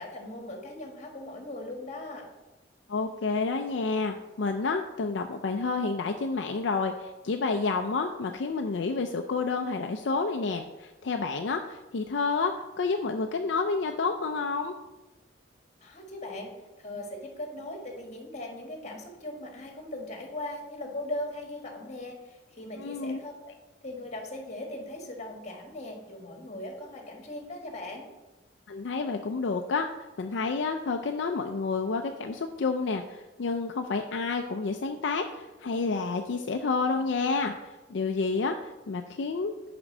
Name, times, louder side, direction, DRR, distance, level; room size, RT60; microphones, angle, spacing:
voice 1, 0.0-2.2 15.8-16.5 16.8-23.3 23.8-28.1, left 1 dB, 40° left, 2 dB, 1.6 m, -39 dB
voice 2, 2.9-14.7 22.8-23.2 28.7-29.9 30.2-39.5, left 4 dB, 70° left, 4 dB, 0.5 m, -29 dB
6.0 x 5.2 x 6.6 m, 1.1 s
head